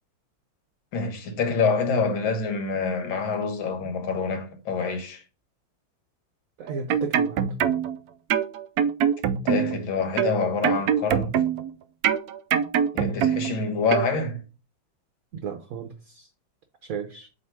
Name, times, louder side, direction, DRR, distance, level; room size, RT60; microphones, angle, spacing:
voice 1, 0.9-5.2 9.2-11.3 12.9-14.4, left 4 dB, 90° left, 2.0 m, -26 dB
voice 2, 6.6-7.5 15.3-16.3 16.8-17.3, right 6 dB, 60° right, 0.9 m, -34 dB
sound 1, 6.7-8.0 8.3-9.8 10.2-11.7 12.0-13.6 13.9-14.1, right 8 dB, 90° right, 0.8 m, -23 dB
7.9 x 2.9 x 4.5 m
omnidirectional pair, 2.1 m